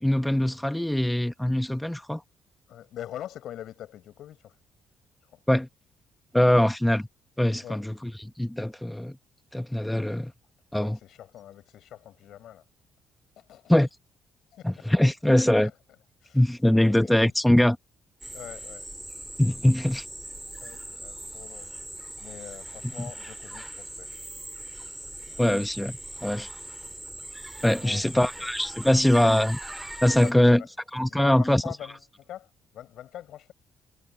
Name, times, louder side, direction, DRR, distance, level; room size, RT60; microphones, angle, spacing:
voice 1, 0.0-2.2 5.5-5.7 6.3-7.1 7.4-8.1 8.4-9.1 9.5-10.3 10.7-11.0 13.7-13.9 14.6-15.7 16.3-17.8 19.4-20.0 25.4-26.5 27.6-29.6 30.0-30.6 30.9-31.7, left 1 dB, 5° left, 1.3 m, -22 dB
voice 2, 2.7-4.5 5.3-5.4 7.6-7.8 10.7-12.6 13.4-13.7 14.5-14.9 15.6-15.7 16.2-17.3 18.3-18.9 20.6-24.1 25.3-25.4 27.6-28.5 30.2-30.7 31.1-33.5, left 12 dB, 75° left, 5.6 m, -44 dB
sound 1, 18.2-30.3, right 1 dB, 10° right, 2.6 m, -40 dB
cardioid pair, 85°, 0 cm